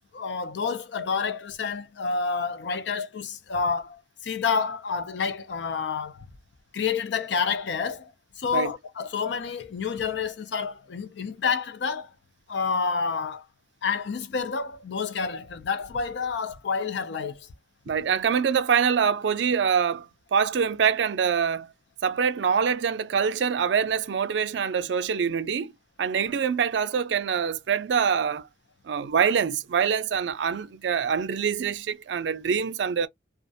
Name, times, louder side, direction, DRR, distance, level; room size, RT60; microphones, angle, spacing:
voice 1, 0.1-6.3 6.7-8.1 8.4-12.1 12.5-13.5 13.8-17.5, left 5 dB, 75° left, 0.4 m, -29 dB
voice 2, 17.9-21.7 22.0-25.7 26.0-28.5 28.8-33.1, right 7 dB, 80° right, 0.4 m, -25 dB
2.3 x 2.1 x 2.6 m
head